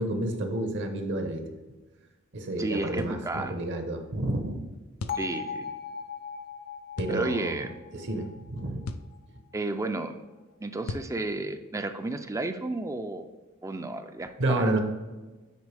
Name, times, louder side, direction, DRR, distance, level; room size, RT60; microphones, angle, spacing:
voice 1, 0.0-1.4 2.3-4.6 7.0-7.6 7.9-8.8 14.4-14.8, right 1 dB, 60° right, 5 dB, 1.0 m, -30 dB
voice 2, 2.6-3.6 5.1-5.6 7.1-7.8 9.5-10.2 10.6-13.3 13.6-14.8, right 2 dB, 15° right, 8 dB, 0.4 m, -32 dB
sound 1, 3.0-3.2 5.0-5.3 7.0-7.2 8.9-9.1 10.9-11.2, left 3 dB, 90° left, 0.5 m, -36 dB
Bell, 5.1-9.2, left 6 dB, 45° left, 0.7 m, -39 dB
9.5 x 4.4 x 3.4 m, 1.2 s
head